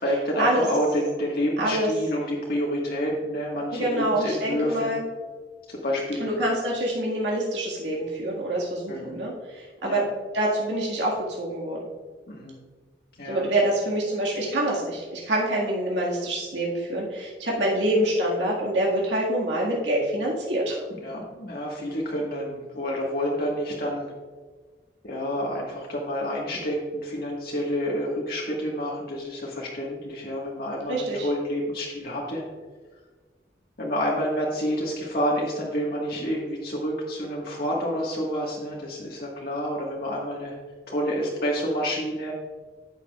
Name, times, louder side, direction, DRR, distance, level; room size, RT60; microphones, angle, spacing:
voice 1, 0.0-4.9 5.7-6.4 8.9-9.2 9.8-10.0 12.3-12.6 13.2-13.5 20.9-24.1 25.0-32.4 33.8-40.5 40.9-42.3, equal, 55° left, -4 dB, 1.6 m, -29 dB
voice 2, 1.6-1.9 3.7-5.0 6.2-9.3 9.8-10.1 10.3-11.8 13.3-20.8 30.9-31.3, right 1 dB, 90° right, -4 dB, 1.9 m, -26 dB
10.5 x 8.3 x 2.4 m, 1.4 s
head